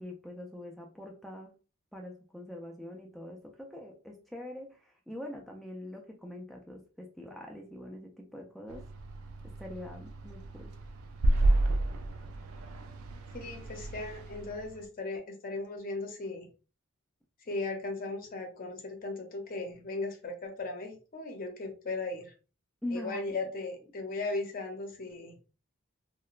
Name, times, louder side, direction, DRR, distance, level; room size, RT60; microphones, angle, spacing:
voice 1, 0.0-1.5 1.9-8.9 9.4-10.7 22.8-23.4, left 1 dB, ahead, 0.3 m, -43 dB
sound 1, 8.7-14.8, right 1 dB, 85° right, 0.4 m, -31 dB
voice 2, 13.3-16.5 17.5-22.3 22.9-25.4, left 3 dB, 45° left, 0.6 m, -37 dB
2.9 x 2.1 x 2.3 m
head